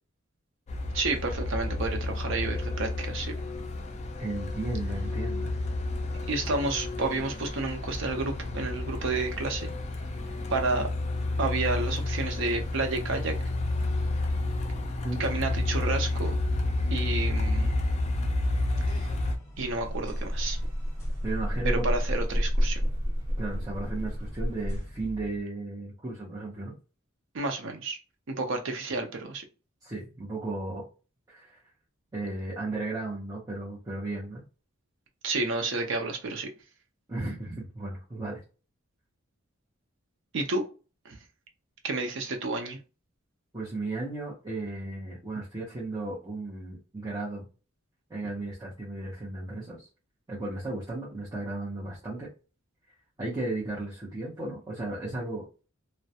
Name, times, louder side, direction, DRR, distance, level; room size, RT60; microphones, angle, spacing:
Truck, 0.7-19.4, left 2 dB, 35° left, 0.3 m, -30 dB
voice 1, 0.9-3.4 6.3-9.7 10.5-10.9 11.4-13.4 15.2-16.4 16.9-17.8 18.9-19.1 19.6-20.6 21.6-22.9 27.3-28.0 28.3-29.4 35.2-36.5 40.3-40.7 41.0-41.2 41.8-42.8, right 3 dB, 65° right, 4 dB, 0.5 m, -30 dB
voice 2, 4.2-5.5 15.0-15.2 21.2-21.8 23.4-26.8 29.8-30.8 31.3-31.6 32.1-34.4 37.1-38.4 43.5-47.5 48.1-49.9 50.3-52.3 53.2-55.5, right 2 dB, 20° right, -8 dB, 0.6 m, -35 dB
sound 1, 19.2-25.4, equal, 15° left, 1.0 m, -45 dB
sound 2, 19.5-24.8, equal, 90° right, 0.9 m, -30 dB
2.2 x 2.1 x 2.7 m, 0.34 s
head